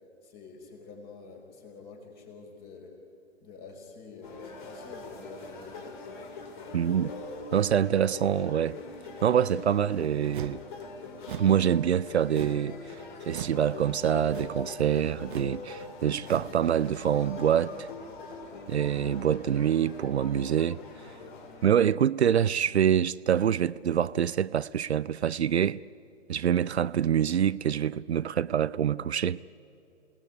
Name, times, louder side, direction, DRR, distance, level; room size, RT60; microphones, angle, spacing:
voice 1, 0.2-3.0 3.4-5.9, left 4 dB, 25° left, 5.2 m, -47 dB
sound 1, 4.2-21.7, left 3 dB, 40° left, 3.4 m, -42 dB
voice 2, 6.7-7.1 7.5-8.8 9.2-10.6 11.4-17.9 18.7-20.8 21.6-25.8 26.3-29.4, right 9 dB, 65° right, 0.6 m, -25 dB
sound 2, 10.3-10.7 11.2-11.6 12.3-12.7 13.3-13.6 14.3-14.7 15.2-15.6 16.2-16.6, right 10 dB, 45° right, 0.9 m, -40 dB
28.0 x 18.5 x 9.7 m
figure-of-eight pair, 125°, 35 cm